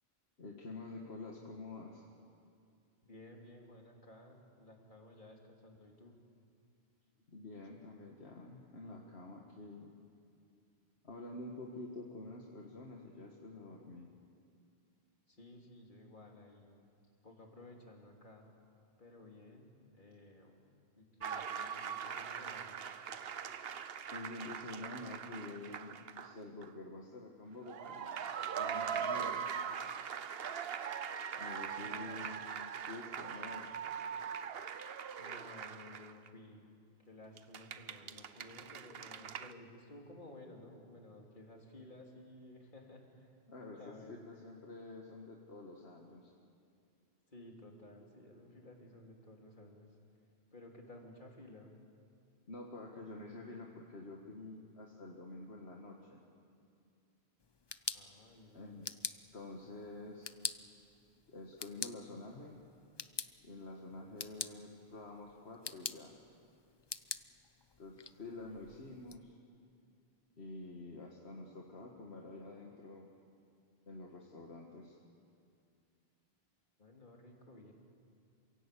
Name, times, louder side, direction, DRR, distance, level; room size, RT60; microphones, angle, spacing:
voice 1, 0.4-2.1 7.3-9.9 11.0-14.1 24.1-28.1 28.6-29.5 31.4-32.4 32.9-33.7 43.5-46.3 52.5-56.2 58.5-58.9 59.3-60.3 61.3-62.6 63.4-66.1 67.8-69.4 70.4-73.1 73.9-75.0, left 2 dB, 80° left, 0 dB, 2.0 m, -48 dB
voice 2, 3.0-6.1 15.3-16.8 17.2-18.5 19.0-20.6 21.0-22.8 24.0-24.1 31.8-32.2 35.2-36.6 37.0-43.3 43.8-44.1 47.3-49.9 50.5-51.7 57.9-58.9 68.3-68.7 76.8-77.7, left 1 dB, 50° left, 0 dB, 3.2 m, -55 dB
sound 1, 21.2-26.4 26.6-26.7 27.6-36.3 37.4-39.5, right 7 dB, 70° right, 1.0 m, -41 dB
sound 2, 57.4-69.2, left 5 dB, 30° left, 0.5 m, -46 dB
27.5 x 17.0 x 8.4 m, 2.4 s
omnidirectional pair, 1.1 m